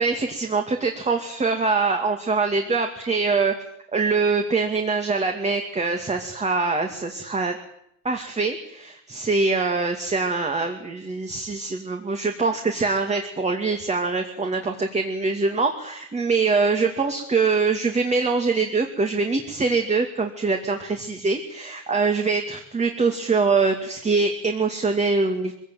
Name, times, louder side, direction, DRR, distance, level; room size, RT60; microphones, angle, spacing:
voice 1, 0.0-3.5 3.9-7.6 8.0-25.5, right 4 dB, 20° right, 5 dB, 2.4 m, -23 dB
23.5 x 17.0 x 9.3 m, 0.75 s
cardioid pair, 140°, 31 cm